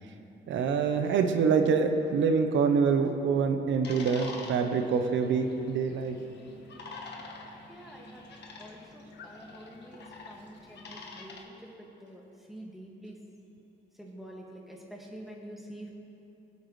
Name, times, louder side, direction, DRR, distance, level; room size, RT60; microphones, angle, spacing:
voice 1, 0.5-6.2, right 5 dB, 70° right, 6 dB, 0.9 m, -26 dB
sound 1, 3.8-11.4, left 3 dB, 60° left, 1.4 m, -46 dB
voice 2, 7.7-8.2 8.6-12.2 12.5-13.2 14.0-15.9, right 1 dB, ahead, -2 dB, 2.0 m, -47 dB
21.0 x 8.3 x 3.3 m, 2.9 s
cardioid pair, 90°, 20 cm